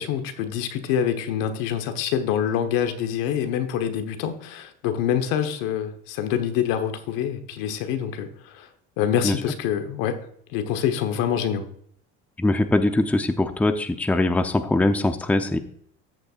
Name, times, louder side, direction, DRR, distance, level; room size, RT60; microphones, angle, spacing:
voice 1, 0.0-8.7 9.0-10.2 10.5-11.7, left 9 dB, 75° left, 8 dB, 1.3 m, -26 dB
voice 2, 12.4-15.6, left 2 dB, 5° left, 8 dB, 0.6 m, -22 dB
14.0 x 6.7 x 2.4 m, 0.65 s
supercardioid pair, 105°, 33 cm